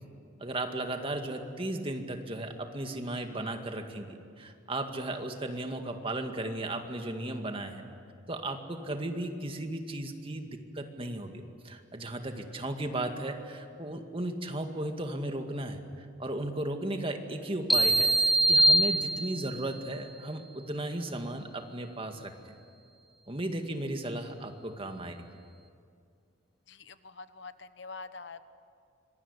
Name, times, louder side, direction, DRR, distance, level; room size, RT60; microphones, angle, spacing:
voice 1, 0.4-7.8 8.3-22.3 23.3-25.2, right 1 dB, 30° right, 5 dB, 2.1 m, -35 dB
sound 1, 17.7-19.6, right 1 dB, ahead, 0.6 m, -23 dB
voice 2, 26.7-28.4, left 4 dB, 65° left, 12 dB, 1.1 m, -45 dB
26.0 x 23.0 x 9.9 m, 2.3 s
head